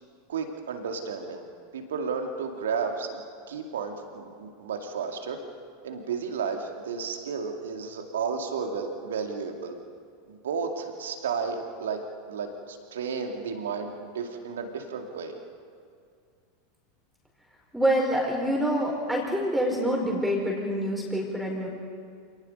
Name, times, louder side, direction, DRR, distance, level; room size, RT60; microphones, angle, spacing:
voice 1, 0.3-1.5 1.7-5.4 5.8-9.8 10.3-15.4, right 5 dB, 70° right, 4 dB, 2.4 m, -33 dB
voice 2, 17.7-21.7, equal, ahead, -1 dB, 4.6 m, -26 dB
27.5 x 19.0 x 5.4 m, 2.2 s
figure-of-eight pair, 85°, 0 cm